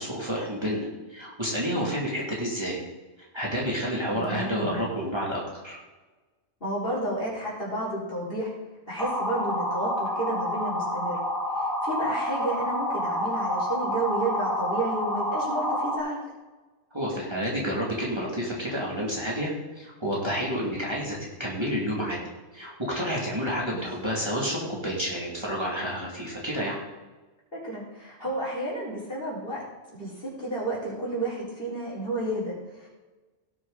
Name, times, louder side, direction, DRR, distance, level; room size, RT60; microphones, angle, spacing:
voice 1, 0.0-2.8 3.3-5.8 16.9-22.2 22.5-26.8, equal, 25° right, -5 dB, 2.7 m, -30 dB
voice 2, 4.1-4.8 6.6-8.5 8.9-11.2 11.5-16.2 23.7-23.8 27.5-29.6 29.9-32.9, right 1 dB, 55° left, -6 dB, 4.9 m, -31 dB
sound 1, 9.0-16.0, left 1 dB, ahead, 2.1 m, -28 dB
17.5 x 7.4 x 4.2 m, 1.2 s
omnidirectional pair, 1.2 m